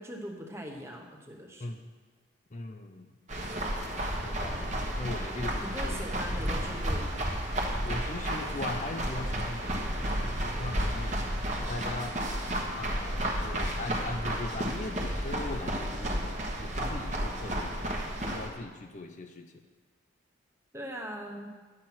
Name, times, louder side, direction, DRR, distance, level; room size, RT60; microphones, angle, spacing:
voice 1, 0.0-1.7 5.6-7.2 20.7-21.5, equal, 15° right, 1 dB, 1.1 m, -40 dB
voice 2, 2.5-3.1 4.2-6.1 7.8-12.2 12.7-19.5, left 2 dB, 40° left, 5 dB, 0.6 m, -40 dB
sound 1, 3.3-18.5, right 1 dB, 35° right, 1.3 m, -32 dB
10.5 x 7.6 x 5.9 m, 1.4 s
head